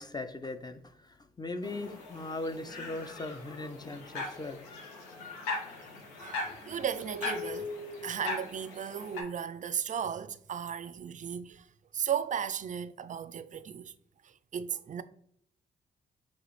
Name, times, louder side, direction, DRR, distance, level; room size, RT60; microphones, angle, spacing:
voice 1, 0.0-4.6, left 2 dB, 20° left, 0.5 m, -39 dB
sound 1, 1.6-9.2, left 3 dB, 90° left, 0.7 m, -39 dB
voice 2, 6.2-7.7 8.0-11.7 11.9-13.9 14.2-15.0, right 8 dB, 35° right, 0.4 m, -35 dB
6.3 x 2.4 x 3.2 m
hypercardioid pair, 40°, 21 cm